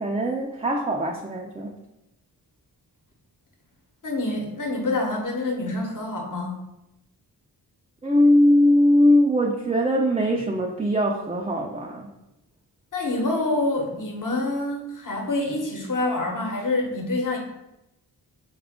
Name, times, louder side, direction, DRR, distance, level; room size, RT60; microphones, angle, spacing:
voice 1, 0.0-1.7 8.0-12.1, left 1 dB, 15° right, 0 dB, 0.4 m, -21 dB
voice 2, 4.0-6.6 12.9-17.4, left 2 dB, 50° left, 0 dB, 1.1 m, -26 dB
4.0 x 2.4 x 3.5 m, 0.90 s
cardioid pair, 50°, 41 cm